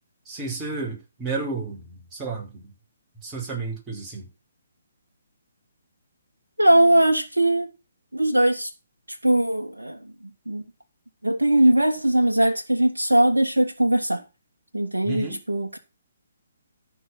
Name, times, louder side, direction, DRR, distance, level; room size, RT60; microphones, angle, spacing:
voice 1, 0.3-2.7 3.2-4.3 15.0-15.4, right 3 dB, 15° right, 5.3 m, -32 dB
voice 2, 6.6-7.7 8.1-8.7 9.1-10.1 10.5-10.6 11.2-14.2 14.7-15.8, right 1 dB, 80° right, 1.3 m, -20 dB
14.0 x 5.5 x 6.1 m
figure-of-eight pair, 135°, 0 cm